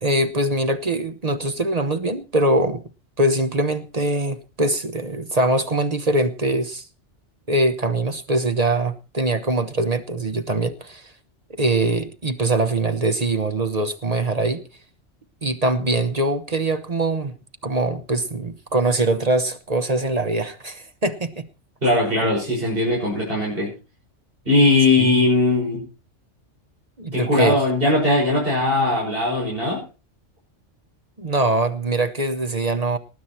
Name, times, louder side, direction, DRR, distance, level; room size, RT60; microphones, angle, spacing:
voice 1, 0.0-2.8 3.2-6.9 7.5-11.1 11.5-14.6 15.4-17.3 17.6-21.4 25.0-25.1 27.0-27.6 31.2-33.0, right 2 dB, 35° right, 1.1 m, -22 dB
voice 2, 21.8-23.7 24.5-25.8 27.1-29.8, left 2 dB, 50° right, 6.5 m, -19 dB
19.5 x 9.5 x 4.4 m
omnidirectional pair, 1.2 m